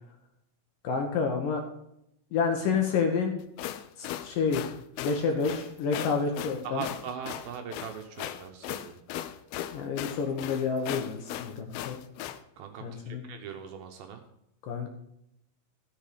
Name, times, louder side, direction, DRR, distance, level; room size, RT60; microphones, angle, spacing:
voice 1, 0.8-1.6 2.3-3.3 4.0-4.7 5.0-6.9 9.7-12.0 12.8-13.2 14.6-14.9, left 5 dB, 65° left, 3 dB, 2.3 m, -29 dB
sound 1, 3.4-12.4, left 12 dB, 85° left, 2.2 m, -37 dB
voice 2, 6.6-8.9 12.6-14.2, right 7 dB, 75° right, 4 dB, 2.4 m, -40 dB
13.0 x 6.7 x 5.0 m, 0.78 s
omnidirectional pair, 4.8 m